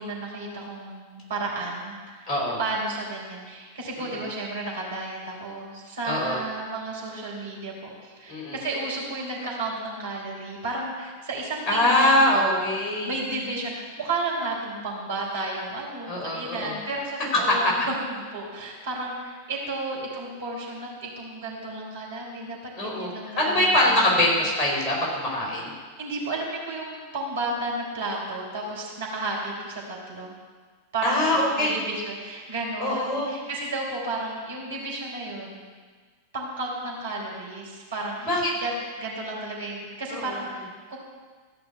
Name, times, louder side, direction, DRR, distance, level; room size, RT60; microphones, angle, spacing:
voice 1, 0.0-2.3 2.6-12.6 13.0-17.9 18.3-24.4 26.0-30.3 30.9-35.6 36.3-41.0, right 2 dB, 60° right, -3 dB, 4.0 m, -32 dB
voice 2, 2.3-2.6 4.0-4.1 6.0-6.4 8.3-8.6 11.7-13.1 16.1-16.7 22.8-23.1 23.4-25.7 31.0-31.7 32.8-33.3 38.3-38.5 40.1-40.4, left 1 dB, 25° left, -3 dB, 4.8 m, -23 dB
14.5 x 6.0 x 8.3 m, 1.5 s
figure-of-eight pair, 90°, 0 cm